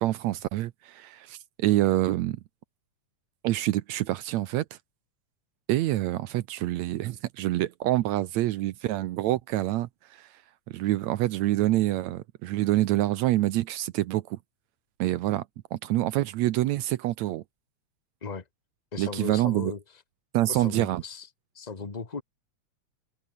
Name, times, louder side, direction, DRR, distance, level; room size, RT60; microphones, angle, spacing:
voice 1, 0.0-2.4 3.4-4.7 5.7-10.3 10.7-14.4 15.0-15.5 15.7-17.4 19.0-19.7 20.3-21.0, right 15 dB, 75° right, 2.0 m, -26 dB
voice 2, 18.9-19.8 20.5-21.3 21.5-22.2, left 4 dB, 25° left, 1.0 m, -36 dB
omnidirectional pair, 3.3 m